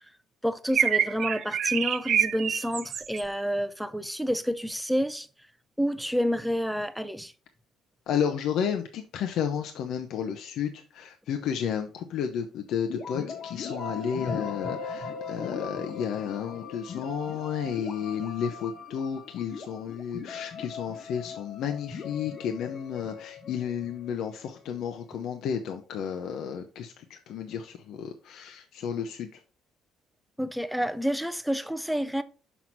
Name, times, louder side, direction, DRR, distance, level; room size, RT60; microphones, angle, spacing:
voice 1, 0.4-5.3 5.8-7.3 30.4-32.2, equal, ahead, 0.5 m, -29 dB
sound 1, 0.7-3.2, right 9 dB, 45° right, 0.5 m, -26 dB
voice 2, 8.1-29.4, left 8 dB, 65° left, 0.8 m, -32 dB
sound 2, 12.9-24.6, left 5 dB, 45° left, 1.3 m, -39 dB
6.1 x 5.7 x 4.6 m
cardioid pair, 160°, 0 cm